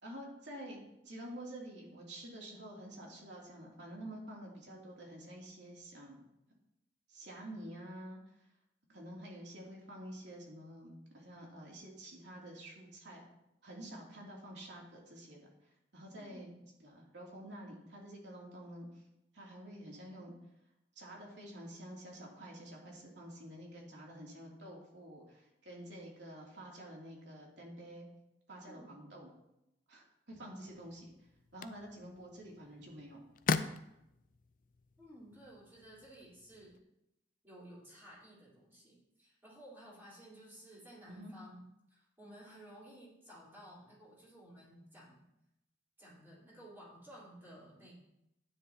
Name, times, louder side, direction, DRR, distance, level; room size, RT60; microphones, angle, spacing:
voice 1, 0.0-6.2 7.1-8.2 8.9-13.2 13.6-15.4 15.9-16.5 16.8-19.0 19.3-20.3 21.0-28.1 28.5-29.3 29.9-31.1 31.5-33.2 41.0-41.3, right 1 dB, 65° right, -2 dB, 2.9 m, -49 dB
voice 2, 16.2-16.7 28.7-29.1 35.0-36.8 37.4-41.6 41.9-45.2 46.0-48.0, right 1 dB, 10° right, -7 dB, 4.0 m, -55 dB
sound 1, 30.6-36.8, left 4 dB, 45° left, 0.5 m, -41 dB
12.5 x 9.7 x 2.9 m, 0.85 s
head